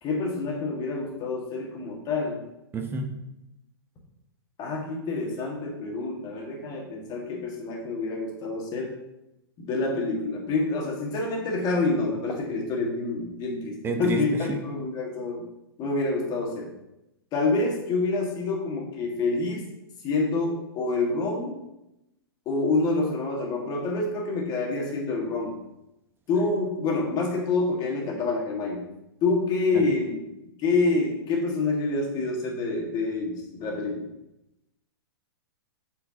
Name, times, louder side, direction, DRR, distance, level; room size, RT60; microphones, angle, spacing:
voice 1, 0.0-2.4 4.6-8.9 9.6-15.4 15.8-16.7 17.3-19.6 20.0-21.6 22.5-25.6 26.3-28.8 29.2-34.1, left 3 dB, 30° left, 0 dB, 1.8 m, -27 dB
voice 2, 2.7-3.1 13.8-14.6, right 3 dB, 15° right, 5 dB, 0.8 m, -29 dB
8.0 x 4.6 x 2.9 m, 0.89 s
hypercardioid pair, 120°, 13 cm